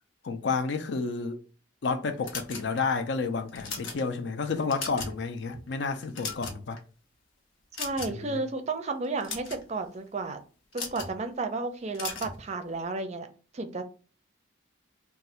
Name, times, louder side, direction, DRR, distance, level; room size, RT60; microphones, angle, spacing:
voice 1, 0.2-1.4 1.8-6.8 8.1-8.4, left 4 dB, 65° left, 0.4 m, -30 dB
sound 1, 2.2-3.0 3.5-4.0 4.5-5.2 5.5-5.7 6.0-6.8 7.7-8.3 9.0-9.6 10.7-11.1 11.9-12.4, left 4 dB, 85° left, 0.8 m, -37 dB
voice 2, 7.8-10.4 10.7-13.3 13.5-13.8, right 3 dB, 35° right, 0.4 m, -32 dB
2.6 x 2.3 x 4.1 m
head